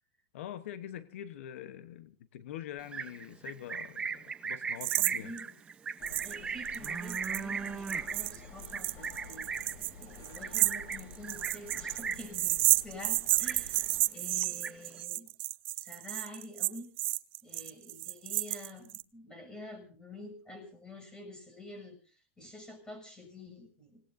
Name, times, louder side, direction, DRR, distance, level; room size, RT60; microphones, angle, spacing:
voice 1, 0.3-5.3, left 11 dB, 75° left, 12 dB, 1.1 m, -44 dB
Livestock farm animals working animals, 2.8-12.4 12.7-13.1 13.3-14.0 14.3-15.0, right 5 dB, 15° right, 0.8 m, -38 dB
sound 1, 4.8-5.1 5.4-5.5 6.1-6.3 6.6-19.0, right 19 dB, 60° right, 0.7 m, -31 dB
voice 2, 5.0-5.6 6.2-9.5 10.0-15.3 15.8-16.9 17.4-22.0 22.4-24.0, left 2 dB, 10° left, 5 dB, 6.9 m, -48 dB
sound 2, 6.0-14.0, left 5 dB, 45° left, 5.3 m, -51 dB
27.0 x 18.5 x 2.7 m, 0.37 s
supercardioid pair, 140°, 7 cm